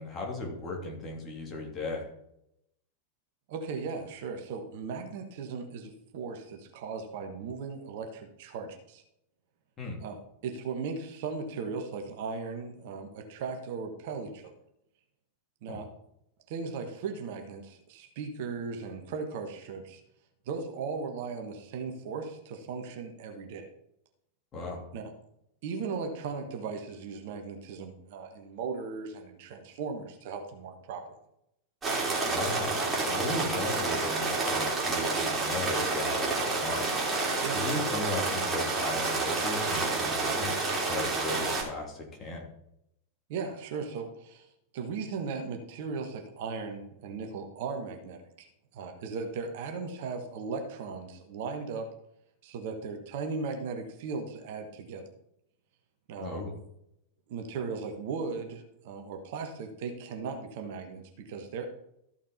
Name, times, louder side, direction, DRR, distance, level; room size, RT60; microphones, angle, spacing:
voice 1, 0.0-2.1 9.8-10.0 15.7-15.8 24.5-24.8 32.3-36.9 37.5-42.4 56.2-56.5, left 2 dB, 25° left, -1 dB, 3.3 m, -36 dB
voice 2, 3.5-9.0 10.0-14.5 15.6-15.9 16.5-20.0 20.4-23.7 24.9-25.0 25.6-31.0 37.4-37.6 43.3-44.5 44.7-51.9 52.4-55.0 56.1-56.4 57.3-61.7, right 5 dB, 50° right, 4 dB, 1.5 m, -37 dB
sound 1, 31.8-41.6, right 3 dB, 15° right, 3.6 m, -29 dB
14.0 x 5.8 x 4.4 m, 0.78 s
figure-of-eight pair, 90°, 0 cm